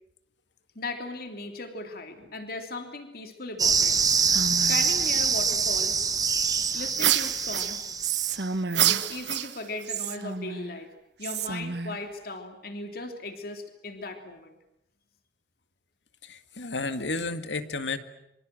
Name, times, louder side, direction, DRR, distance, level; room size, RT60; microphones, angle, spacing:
voice 1, 0.7-4.0 4.7-6.0 6.7-7.9 8.9-10.9 11.2-14.6, left 2 dB, 55° left, 6 dB, 3.2 m, -37 dB
sound 1, 3.6-8.4, right 6 dB, 20° right, 1.1 m, -25 dB
Whispering, 4.0-5.1 6.4-7.1 8.0-9.2 9.9-10.8 11.2-12.1, right 5 dB, 65° right, 1.3 m, -33 dB
sound 2, 7.0-8.1 8.7-9.9, right 12 dB, 90° right, 1.1 m, -26 dB
voice 2, 16.2-18.0, left 3 dB, 90° left, 9 dB, 2.0 m, -32 dB
27.0 x 25.0 x 7.7 m, 0.83 s
head